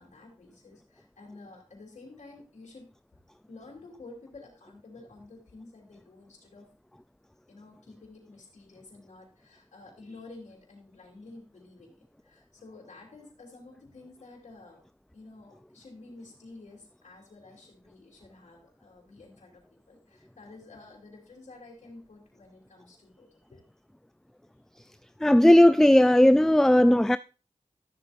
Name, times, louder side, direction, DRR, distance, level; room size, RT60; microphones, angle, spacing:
voice 1, 0.0-2.9 3.5-6.7 7.5-14.8 15.1-23.6, left 3 dB, 90° left, 3.0 m, -50 dB
voice 2, 25.2-27.2, left 1 dB, 5° left, 0.3 m, -17 dB
13.0 x 7.5 x 2.6 m
cardioid pair, 40°, 12 cm